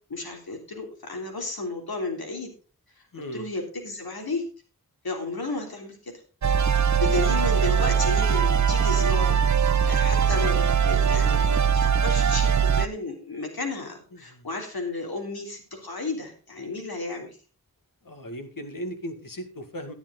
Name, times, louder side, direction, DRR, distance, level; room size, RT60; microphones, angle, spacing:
voice 1, 0.1-2.5 3.0-3.1 3.3-4.4 5.0-6.1 7.0-9.4 9.8-17.4, left 3 dB, 80° left, 2 dB, 3.3 m, -33 dB
voice 2, 3.1-3.5 14.1-14.5 18.0-19.9, equal, 60° left, 6 dB, 2.1 m, -37 dB
sound 1, 6.4-12.9, right 7 dB, 50° right, 0.7 m, -21 dB
12.0 x 10.5 x 3.9 m, 0.36 s
wide cardioid pair, 55°, 37 cm